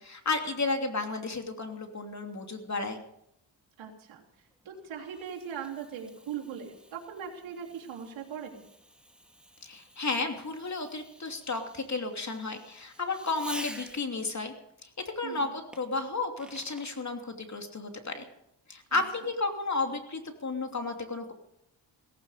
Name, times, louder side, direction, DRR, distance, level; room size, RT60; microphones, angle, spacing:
voice 1, 0.0-3.0 9.6-14.5 14.8-14.9 15.2-18.3 18.7-21.3, left 3 dB, 35° left, 4 dB, 2.9 m, -33 dB
voice 2, 3.8-4.2 4.7-8.6 15.2-15.6 18.9-19.0, right 7 dB, 85° right, -1 dB, 3.4 m, -40 dB
Fireworks, 4.4-14.3 15.7-17.0, right 1 dB, ahead, 2.3 m, -49 dB
17.0 x 16.0 x 5.1 m, 0.78 s
cardioid pair, 70°, 46 cm